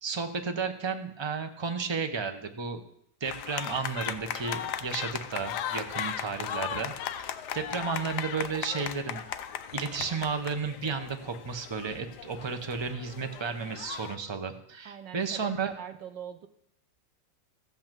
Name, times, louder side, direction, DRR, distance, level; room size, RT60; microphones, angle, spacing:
voice 1, 0.0-2.8 3.2-9.2 9.7-15.7, right 5 dB, 25° right, 6 dB, 0.5 m, -33 dB
sound 1, 3.2-14.2, left 9 dB, 70° left, 1.2 m, -37 dB
voice 2, 14.8-16.5, right 8 dB, 80° right, 9 dB, 1.6 m, -43 dB
15.0 x 5.7 x 7.5 m, 0.73 s
omnidirectional pair, 2.0 m